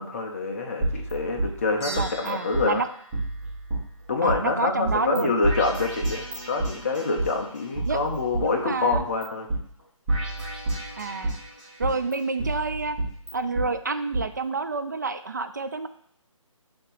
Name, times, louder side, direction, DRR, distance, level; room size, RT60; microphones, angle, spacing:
voice 1, 0.0-2.8 4.1-9.5, left 3 dB, 25° left, 2 dB, 0.7 m, -26 dB
sound 1, 0.8-2.3 2.5-2.6 3.1-4.4 4.8-5.2 5.4-7.3 7.7-9.2 9.5-9.6 10.1-11.4 11.8-13.7 14.1-14.2, right 2 dB, 15° right, 1.4 m, -29 dB
sound 2, 1.8-4.3, right 1 dB, 55° left, 1.7 m, -41 dB
voice 2, 1.9-2.9 4.2-5.3 7.9-8.0 8.4-9.0 11.0-11.4 11.8-13.0 13.3-15.9, right 4 dB, 35° right, 10 dB, 0.3 m, -28 dB
6.4 x 2.9 x 5.7 m, 0.67 s
figure-of-eight pair, 160°, 17 cm